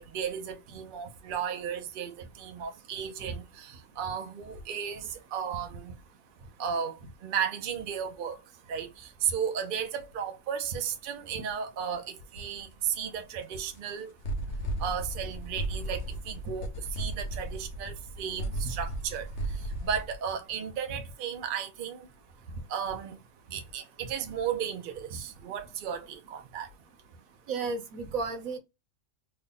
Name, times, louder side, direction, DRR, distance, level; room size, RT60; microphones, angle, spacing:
voice 1, 0.0-5.9 6.6-7.0 7.2-8.4 8.7-14.1 14.8-19.3 19.8-22.1 22.7-23.1 23.5-26.7, right 8 dB, 50° right, 0.7 m, -34 dB
sound 1, 12.5-12.8 13.3-13.4 13.8-13.9 14.2-20.1, right 1 dB, 60° left, 1.0 m, -35 dB
voice 2, 27.5-28.6, right 4 dB, 85° right, 1.3 m, -32 dB
3.3 x 2.2 x 3.8 m
omnidirectional pair, 1.4 m